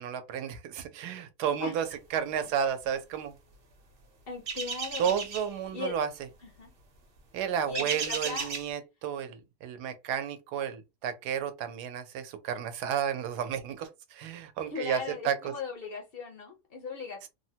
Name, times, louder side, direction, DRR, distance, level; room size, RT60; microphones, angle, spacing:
voice 1, 0.0-3.4 5.0-6.3 7.3-15.5 17.2-17.3, right 8 dB, 85° right, 1.1 m, -32 dB
voice 2, 4.3-5.2 5.7-6.0 6.6-6.7 7.7-8.5 14.7-17.3, left 4 dB, 60° left, 0.6 m, -38 dB
sound 1, 4.5-5.5 7.7-8.7, right 5 dB, 50° right, 0.7 m, -34 dB
3.3 x 2.0 x 2.7 m
omnidirectional pair, 1.7 m